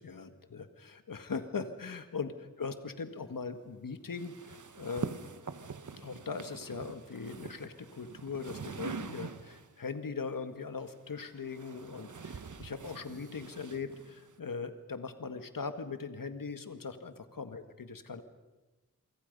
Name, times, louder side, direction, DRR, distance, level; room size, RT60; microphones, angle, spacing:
voice 1, 0.0-5.1 6.0-18.2, left 5 dB, 70° left, 8 dB, 1.8 m, -40 dB
sound 1, 4.1-9.8 10.8-14.4, right 5 dB, 60° right, 1.2 m, -44 dB
28.5 x 24.0 x 5.5 m, 1.1 s
wide cardioid pair, 70°, 35 cm